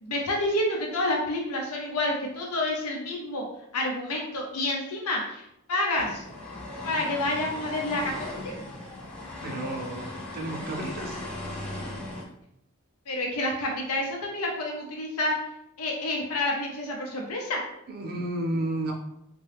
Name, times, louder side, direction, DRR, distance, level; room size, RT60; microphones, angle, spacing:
voice 1, 0.0-3.4 3.7-6.2 6.8-8.5 13.1-15.3 15.8-17.6, left 1 dB, 80° left, 0 dB, 0.7 m, -29 dB
sound 1, 5.9-12.2, left 2 dB, 5° left, 0.6 m, -37 dB
voice 2, 9.4-11.2 17.9-18.9, right 1 dB, 45° right, 1 dB, 0.6 m, -32 dB
3.7 x 2.2 x 3.3 m, 0.80 s
head